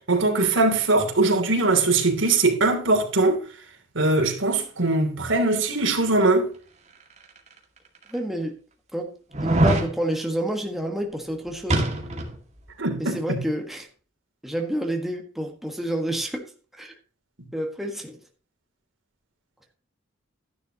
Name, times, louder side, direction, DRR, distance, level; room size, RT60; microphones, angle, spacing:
voice 1, 0.1-3.4 3.9-6.5 12.8-13.4, right 2 dB, 70° right, 3.1 m, -21 dB
sound 1, 7.4-7.5 8.1-8.2 9.3-9.9 11.7-12.4 12.7-12.8, right 1 dB, 35° right, 2.1 m, -22 dB
voice 2, 8.1-8.6 8.9-11.9 13.0-13.9 14.4-16.9 17.5-18.2, right 1 dB, ahead, 1.6 m, -29 dB
13.0 x 11.0 x 2.9 m
head